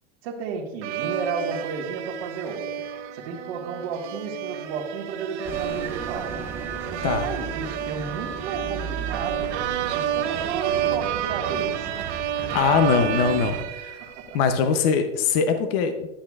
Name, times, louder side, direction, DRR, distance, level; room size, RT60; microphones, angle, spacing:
voice 1, 0.2-2.9 3.1-9.6 9.9-11.9 14.0-14.4, right 5 dB, 65° right, -1 dB, 1.6 m, -33 dB
sound 1, 0.8-14.5, right 10 dB, 80° right, 0.9 m, -30 dB
Bus, 5.4-11.2, right 4 dB, 5° right, 0.3 m, -36 dB
Wind, 9.1-14.6, right 7 dB, 35° right, 0.7 m, -38 dB
voice 2, 12.4-13.6 13.8-14.0 14.3-16.1, left 6 dB, 55° left, 8 dB, 0.8 m, -22 dB
11.5 x 7.8 x 2.4 m, 1.0 s
supercardioid pair, 160°, 34 cm